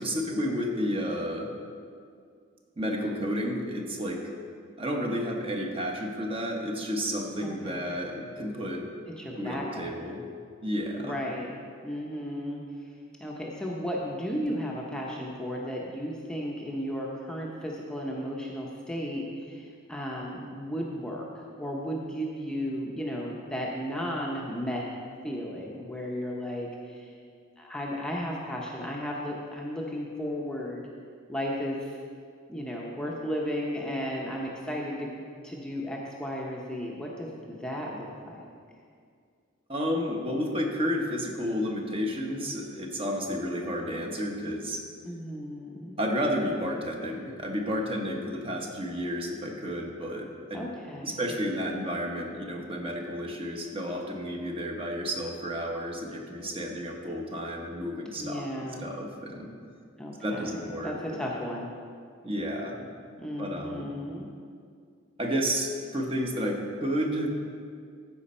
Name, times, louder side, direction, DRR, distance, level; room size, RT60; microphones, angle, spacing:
voice 1, 0.0-1.5 2.8-4.2 4.8-8.9 9.4-10.2 10.6-11.2 39.7-44.8 46.0-50.7 51.0-59.5 60.2-61.2 62.2-62.8 63.4-63.9 65.2-67.3, equal, 25° right, 1 dB, 0.9 m, -31 dB
voice 2, 7.4-7.9 9.2-9.9 11.0-11.5 11.8-12.6 13.2-24.9 25.2-27.1 27.6-30.9 31.3-32.0 32.5-38.4 45.0-46.0 50.5-51.2 58.2-58.9 60.0-61.7 63.2-64.3, equal, 5° left, -3 dB, 0.7 m, -34 dB
14.0 x 5.1 x 4.3 m, 2.2 s
head